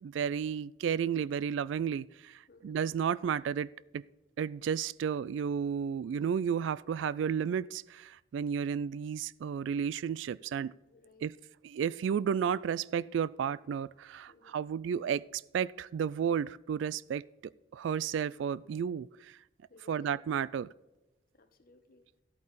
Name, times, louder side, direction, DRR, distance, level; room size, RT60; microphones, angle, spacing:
voice 1, 0.0-4.0 4.4-10.7 11.2-11.3 11.6-17.2 17.7-19.4 19.9-20.7, right 7 dB, 75° right, 21 dB, 0.3 m, -32 dB
voice 2, 2.5-2.8 10.9-11.3 14.3-14.6 19.7-20.1 21.3-22.0, left 3 dB, 50° left, 7 dB, 1.2 m, -59 dB
13.5 x 8.5 x 4.1 m, 1.0 s
head